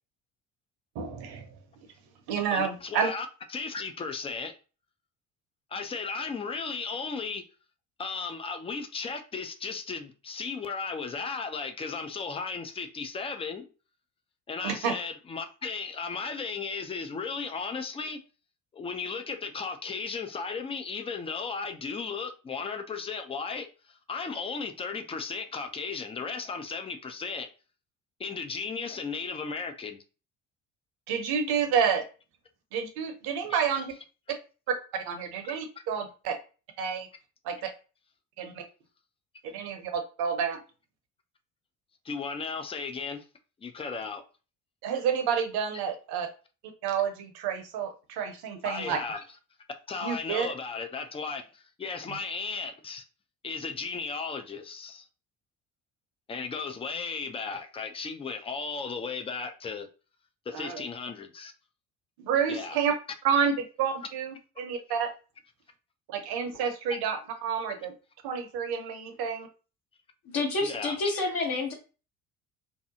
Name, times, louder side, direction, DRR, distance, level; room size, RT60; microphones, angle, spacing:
voice 1, 0.9-1.5 2.3-3.1 14.6-14.9 31.1-32.0 32.7-33.9 35.1-36.4 36.8-37.1 37.4-37.6 38.4-38.6 39.5-40.6 44.8-46.3 46.8-49.0 50.0-50.5 60.5-60.8 62.2-62.9 63.2-65.1 66.1-67.9 68.2-69.5, right 7 dB, 55° right, 0.8 m, -29 dB
voice 2, 2.5-4.5 5.7-7.4 8.0-13.7 14.5-18.2 18.7-27.5 28.2-30.0 33.5-33.6 42.0-43.2 43.6-44.2 48.6-49.2 49.9-53.0 53.4-55.1 56.3-59.9 60.5-61.5 62.5-62.8 70.6-71.0, left 5 dB, 15° left, 0.3 m, -35 dB
voice 3, 70.3-71.7, left 3 dB, 50° left, 0.9 m, -28 dB
2.8 x 2.3 x 2.6 m
hypercardioid pair, 55°, 45 cm